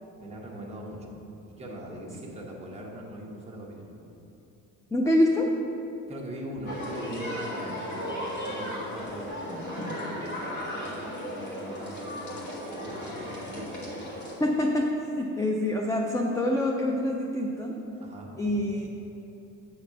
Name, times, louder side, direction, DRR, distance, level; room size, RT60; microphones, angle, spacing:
voice 1, 0.2-1.2 1.5-3.9 6.1-14.1 18.0-18.8, right 1 dB, 20° right, -2 dB, 1.0 m, -41 dB
voice 2, 4.9-5.5 14.4-14.9 15.2-17.7 18.4-18.9, left 1 dB, 10° left, 0 dB, 0.3 m, -25 dB
sound 1, 6.7-14.3, equal, 60° left, 1.8 m, -35 dB
8.5 x 4.2 x 6.1 m, 3.0 s
cardioid pair, 165°, 32 cm